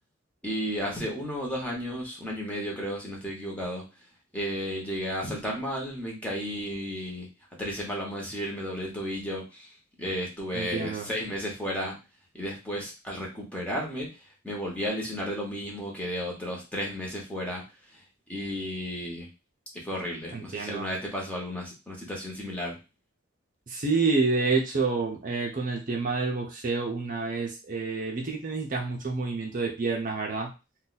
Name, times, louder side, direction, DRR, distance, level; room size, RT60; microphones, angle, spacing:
voice 1, 0.4-3.8 4.3-7.3 7.6-9.7 10.0-12.0 12.3-17.6 17.9-18.0 18.3-19.3 19.8-22.8, equal, 5° left, -2 dB, 0.9 m, -33 dB
voice 2, 10.5-11.1 20.3-20.9 23.7-30.5, right 4 dB, 40° right, 1 dB, 0.5 m, -28 dB
2.6 x 2.2 x 3.9 m, 0.29 s
head